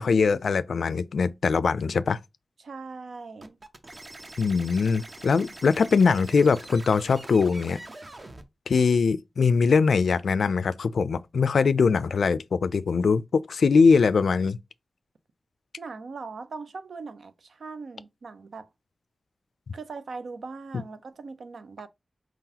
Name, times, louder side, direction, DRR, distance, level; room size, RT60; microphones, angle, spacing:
voice 1, 0.0-2.2 4.4-7.8 8.7-14.6, left 5 dB, 85° left, 0.3 m, -22 dB
voice 2, 2.6-3.6 15.8-18.7 19.7-21.9, right 4 dB, 85° right, 0.5 m, -40 dB
sound 1, 3.4-8.4, right 2 dB, 35° right, 0.7 m, -44 dB
4.6 x 3.9 x 2.8 m
wide cardioid pair, 120°, 0 cm